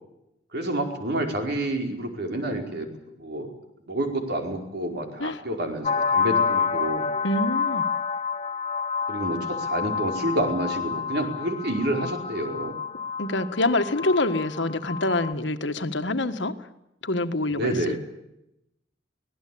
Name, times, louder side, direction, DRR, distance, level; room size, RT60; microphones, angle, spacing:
voice 1, 0.5-2.9 3.2-3.5 3.9-7.0 9.1-12.8 17.5-18.0, right 1 dB, 60° right, 4 dB, 5.0 m, -28 dB
sound 1, 5.8-15.3, left 6 dB, 40° left, 0.8 m, -28 dB
voice 2, 7.2-7.8 13.2-16.5 17.0-18.0, left 2 dB, 70° left, 9 dB, 1.7 m, -26 dB
24.5 x 18.0 x 8.7 m, 0.85 s
head